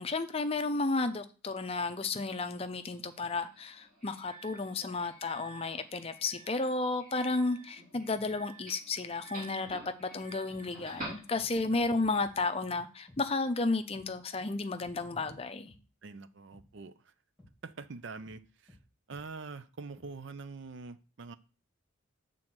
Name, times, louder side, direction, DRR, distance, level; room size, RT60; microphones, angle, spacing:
voice 1, 0.0-15.7, left 3 dB, 25° left, 0.5 m, -33 dB
Doorbell, 2.8-11.8, right 1 dB, 40° right, 3.1 m, -49 dB
sound 1, 9.6-9.8 10.5-10.6 11.3-11.5 11.8-12.3 13.1-13.2 13.9-14.1 14.8-14.9 15.2-15.4 15.7-15.8 16.5-16.7 17.4-17.5 18.3-18.4 18.7-18.8 19.1-19.3 20.0-20.1, left 1 dB, 5° right, 2.3 m, -57 dB
voice 2, 10.6-11.0 16.0-17.1 17.6-18.8 19.1-21.4, right 4 dB, 55° right, 0.5 m, -45 dB
7.3 x 3.8 x 6.1 m
head